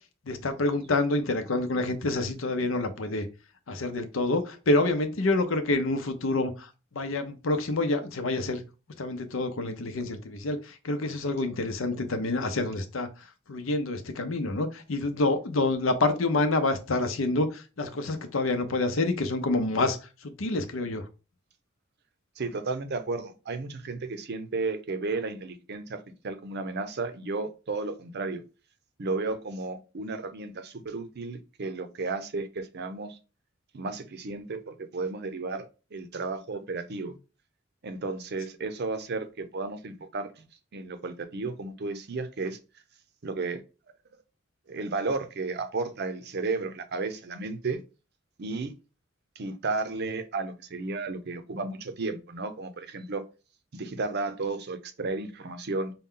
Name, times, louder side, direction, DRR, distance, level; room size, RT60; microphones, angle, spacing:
voice 1, 0.3-3.3 3.7-6.7 6.9-8.6 9.0-13.1 13.5-20.0 20.2-21.0, left 2 dB, 80° left, 0.7 m, -27 dB
voice 2, 22.4-28.4 29.0-33.2 33.7-35.7 35.9-37.2 37.8-40.5 40.7-42.6 43.2-43.6 44.7-47.8 48.4-48.7 49.4-53.2 53.7-55.9, right 3 dB, 55° right, 0.6 m, -33 dB
5.3 x 2.3 x 3.7 m
head